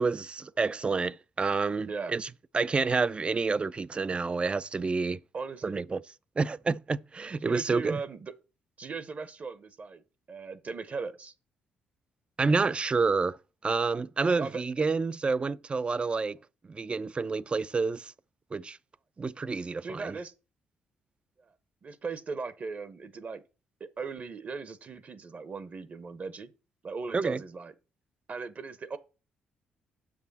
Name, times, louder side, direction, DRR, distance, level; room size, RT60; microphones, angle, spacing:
voice 1, 0.0-2.3 2.5-5.2 5.6-6.0 6.4-8.0 12.4-13.4 13.6-16.4 16.7-18.1 18.5-18.8 19.2-20.1 27.1-27.4, right 4 dB, 30° right, 0.4 m, -28 dB
voice 2, 5.3-5.8 7.4-8.3 8.8-11.3 14.4-14.6 19.8-20.3 21.4-21.5 21.8-23.4 23.8-26.5 26.8-27.7 28.3-29.0, right 4 dB, 45° right, 0.9 m, -38 dB
7.1 x 6.2 x 4.1 m
supercardioid pair, 65°, 4 cm